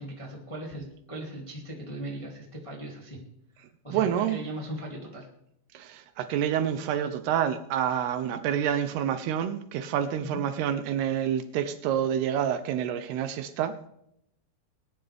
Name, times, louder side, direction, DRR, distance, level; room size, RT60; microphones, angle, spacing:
voice 1, 0.0-3.2 3.5-5.3 10.2-10.4, right 1 dB, 10° left, -1 dB, 1.6 m, -39 dB
voice 2, 3.9-4.4 5.7-13.9, right 9 dB, 80° right, 10 dB, 2.6 m, -28 dB
21.0 x 10.0 x 3.5 m, 0.78 s
omnidirectional pair, 4.9 m